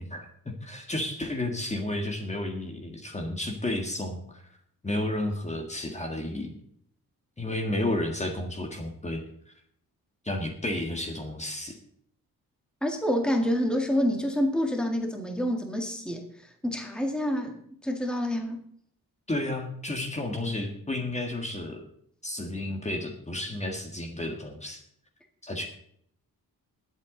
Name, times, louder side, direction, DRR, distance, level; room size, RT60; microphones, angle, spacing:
voice 1, 0.0-4.4 4.8-6.5 7.4-9.2 10.2-11.8 19.3-21.8 22.2-24.8 25.4-25.6, left 1 dB, 20° left, 3 dB, 1.8 m, -32 dB
voice 2, 12.8-16.3 16.6-17.6 17.8-18.6, equal, ahead, 3 dB, 1.9 m, -27 dB
20.5 x 8.2 x 3.9 m, 0.66 s
wide cardioid pair, 160°, 36 cm